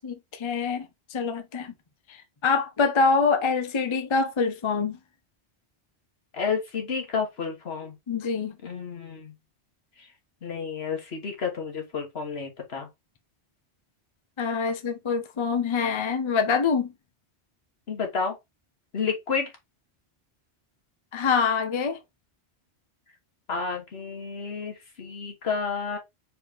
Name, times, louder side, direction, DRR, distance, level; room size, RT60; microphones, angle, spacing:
voice 1, 0.0-1.7 2.1-5.0 8.1-8.6 14.4-16.9 21.1-22.0, left 5 dB, 35° left, 0.6 m, -25 dB
voice 2, 6.3-7.9 8.6-9.3 10.4-12.9 17.9-18.4 18.9-19.5 23.5-26.0, left 5 dB, 70° left, 1.6 m, -30 dB
4.4 x 3.1 x 3.5 m
omnidirectional pair, 1.1 m